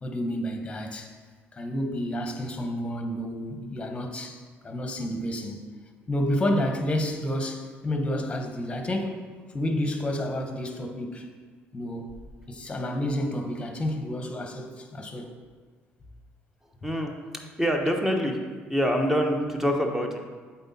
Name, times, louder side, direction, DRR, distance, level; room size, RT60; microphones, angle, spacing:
voice 1, 0.0-1.1 1.5-5.6 6.1-9.2 9.5-11.3 11.7-12.1 12.5-15.3, left 1 dB, 20° left, 4 dB, 1.1 m, -30 dB
voice 2, 16.8-18.4 18.7-20.2, equal, 10° right, 3 dB, 1.0 m, -26 dB
7.8 x 4.4 x 4.2 m, 1.5 s
cardioid pair, 90°, 5 cm